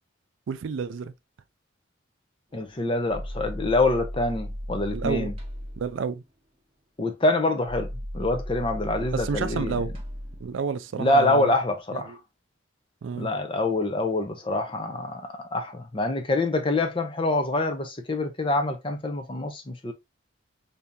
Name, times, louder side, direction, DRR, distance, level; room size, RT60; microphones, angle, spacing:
voice 1, 0.5-1.1 4.9-5.3 5.8-6.2 9.1-9.9 10.4-11.5 11.9-12.2 13.0-13.3, right 5 dB, 70° right, 0.4 m, -30 dB
voice 2, 2.5-5.3 7.0-7.9 8.1-9.8 11.0-12.2 13.2-19.9, left 2 dB, 25° left, 0.5 m, -25 dB
sound 1, 2.7-6.0 7.7-11.8, equal, 30° right, 1.0 m, -36 dB
3.5 x 2.7 x 2.6 m
head